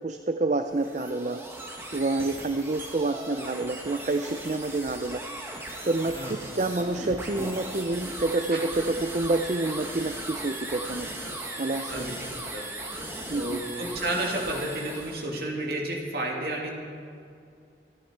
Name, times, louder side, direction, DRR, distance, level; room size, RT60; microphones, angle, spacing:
voice 1, 0.0-1.4 1.9-5.2 5.8-11.2 11.6-12.0 13.3-13.6, right 2 dB, 40° right, 8 dB, 0.5 m, -28 dB
sound 1, 0.6-15.3, right 1 dB, 15° right, 1.6 m, -38 dB
voice 2, 11.9-12.6 13.3-16.8, right 1 dB, 60° right, -1 dB, 2.7 m, -31 dB
25.0 x 10.0 x 4.6 m, 2.4 s
head